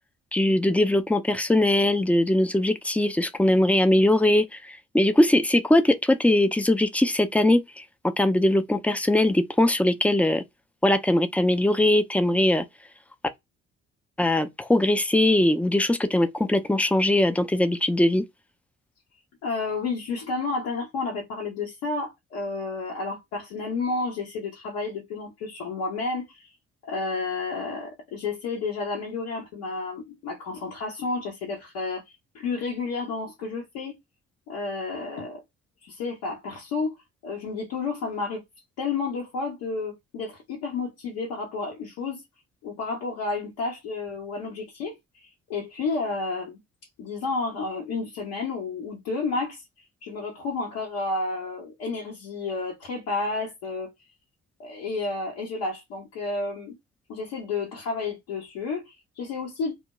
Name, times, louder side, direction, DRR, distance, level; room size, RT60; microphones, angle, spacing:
voice 1, 0.3-10.4 10.8-12.6 14.2-18.2, left 1 dB, 5° left, 0.4 m, -21 dB
voice 2, 19.4-26.5 26.8-34.0 34.5-35.4 35.8-38.4 38.8-42.2 42.6-46.6 47.0-49.6 50.0-53.9 54.6-56.8 57.1-59.7, left 3 dB, 75° left, 0.9 m, -31 dB
2.3 x 2.1 x 2.9 m
hypercardioid pair, 50°, 37 cm